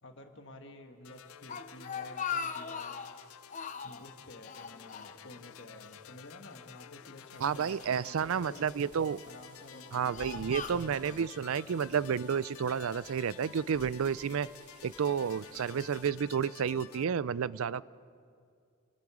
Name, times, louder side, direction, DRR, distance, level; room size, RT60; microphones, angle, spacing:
voice 1, 0.0-3.0 3.8-8.7 9.3-10.5, left 1 dB, 55° left, 4 dB, 1.6 m, -51 dB
sound 1, 1.0-17.0, left 9 dB, 80° left, 0.5 m, -52 dB
Speech, 1.3-3.2 3.5-4.1 4.5-5.6 5.8-6.0 6.8-7.8 8.5-8.9 9.6-11.3, left 6 dB, 35° left, 0.7 m, -40 dB
sound 2, 7.3-16.1, right 2 dB, 35° right, 2.4 m, -58 dB
voice 2, 7.4-9.2 9.9-14.5 14.8-17.8, right 7 dB, 75° right, 20 dB, 0.4 m, -31 dB
28.5 x 19.5 x 4.9 m, 2.3 s
head